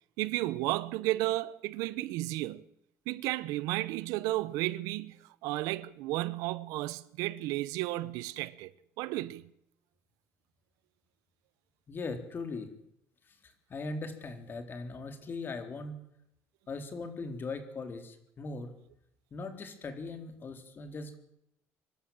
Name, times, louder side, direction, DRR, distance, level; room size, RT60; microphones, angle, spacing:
voice 1, 0.2-2.6 3.1-5.2 5.4-8.7 9.0-9.4, right 17 dB, 85° right, 0.9 m, -33 dB
voice 2, 11.9-12.7 13.3-16.0 16.7-18.7 19.3-21.2, left 3 dB, 40° left, 3.9 m, -40 dB
24.5 x 12.5 x 8.9 m
cardioid pair, 100°, 6 cm